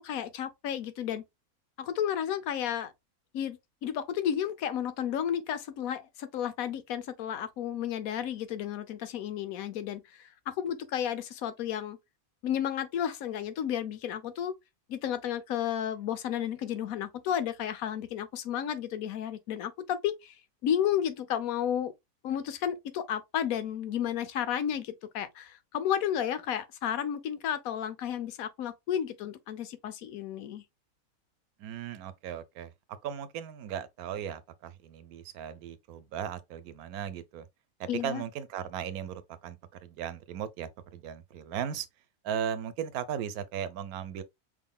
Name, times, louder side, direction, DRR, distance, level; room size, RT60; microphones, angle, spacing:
voice 1, 0.0-1.2 1.8-2.9 3.3-12.0 12.4-14.5 14.9-20.3 20.6-21.9 22.2-30.6 37.9-38.2, left 9 dB, 75° left, 1.1 m, -32 dB
voice 2, 31.6-32.7 33.0-37.5 37.8-41.9 42.2-44.2, right 9 dB, 85° right, 1.1 m, -37 dB
5.3 x 3.7 x 2.2 m
omnidirectional pair, 1.5 m